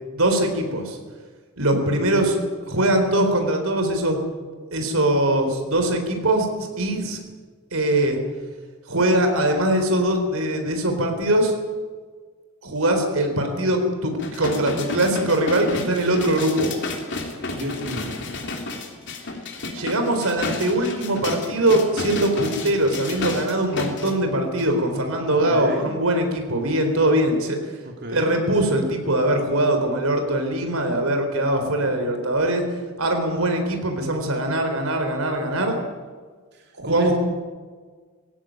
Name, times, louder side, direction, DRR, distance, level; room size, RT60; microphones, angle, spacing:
voice 1, 0.1-1.0 1.6-2.4 2.7-4.2 4.7-7.2 7.7-8.2 8.9-11.5 12.6-16.7 19.7-27.6 28.1-32.6 33.0-35.8 36.7-37.1, right 1 dB, 85° right, 5 dB, 4.0 m, -22 dB
sound 1, 14.2-24.1 24.6-24.7, left 2 dB, 60° left, 3.1 m, -32 dB
voice 2, 17.5-18.2 25.3-25.9 27.8-28.4 36.5-37.2, equal, 55° right, 1 dB, 2.8 m, -33 dB
19.0 x 16.5 x 9.1 m, 1.5 s
head